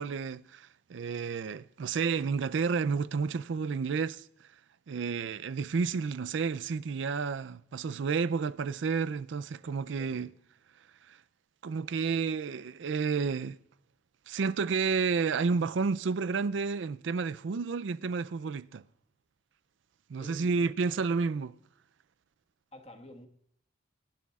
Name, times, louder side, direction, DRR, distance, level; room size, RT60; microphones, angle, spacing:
voice 1, 0.0-4.2 4.9-10.3 11.1-11.2 11.6-13.6 14.3-18.8 20.1-21.5, right 5 dB, 75° right, 0.4 m, -31 dB
voice 2, 9.6-10.3 20.2-21.3 22.7-23.3, left 1 dB, 30° left, 1.4 m, -52 dB
25.0 x 11.0 x 2.4 m
head